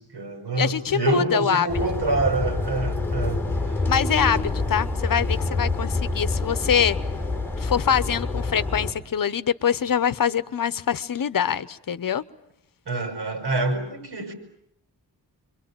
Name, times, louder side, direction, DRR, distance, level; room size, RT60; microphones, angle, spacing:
voice 1, 0.0-3.8 12.9-14.3, right 3 dB, 80° right, 6 dB, 6.6 m, -27 dB
voice 2, 0.6-1.7 3.9-7.0 7.6-12.2, left 8 dB, 55° left, 15 dB, 1.0 m, -24 dB
sound 1, 1.7-8.9, left 3 dB, 5° left, 4.1 m, -27 dB
28.5 x 23.5 x 8.8 m, 0.75 s
wide cardioid pair, 130°, 39 cm